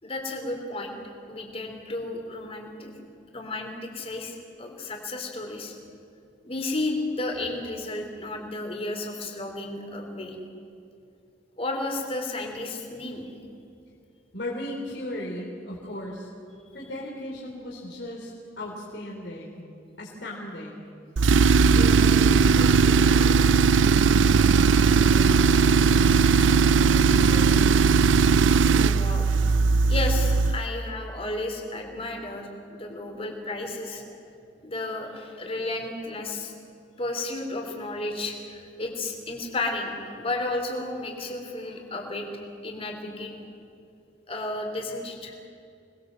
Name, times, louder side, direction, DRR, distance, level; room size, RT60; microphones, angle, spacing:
voice 1, 0.0-1.0 1.3-2.9 3.3-5.7 6.4-10.4 11.6-13.3 28.8-29.3 29.9-34.1 34.6-36.5 37.0-42.3 42.6-43.4 44.3-45.3, left 2 dB, 30° left, 2 dB, 3.6 m, -33 dB
voice 2, 14.3-16.3 16.7-18.3 18.6-19.7 20.0-20.8 21.6-28.0, left 1 dB, 60° left, -3 dB, 4.0 m, -37 dB
Tools, 21.2-30.6, right 5 dB, 85° right, 0.5 m, -19 dB
27.0 x 20.5 x 7.8 m, 2.6 s
head